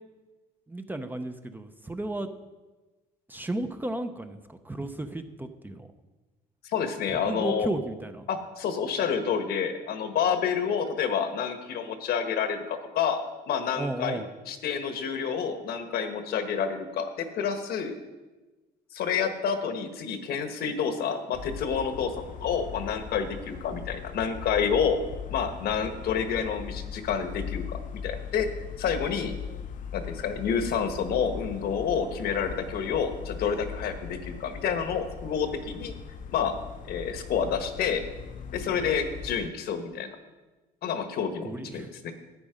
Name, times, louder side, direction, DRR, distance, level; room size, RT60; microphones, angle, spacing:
voice 1, 0.7-2.3 3.3-5.9 7.1-8.3 13.8-14.3 41.4-41.9, right 2 dB, 10° right, 8 dB, 0.7 m, -34 dB
voice 2, 6.6-7.7 8.3-14.2 14.5-17.9 18.9-22.1 22.4-25.0 25.3-29.3 29.9-36.0 36.3-36.5 36.8-38.0 38.5-40.1 40.8-42.1, left 7 dB, 70° left, 8 dB, 1.3 m, -29 dB
sound 1, 21.3-39.5, left 6 dB, 50° left, 0.7 m, -39 dB
11.0 x 8.8 x 5.1 m, 1.2 s
cardioid pair, 110°, 17 cm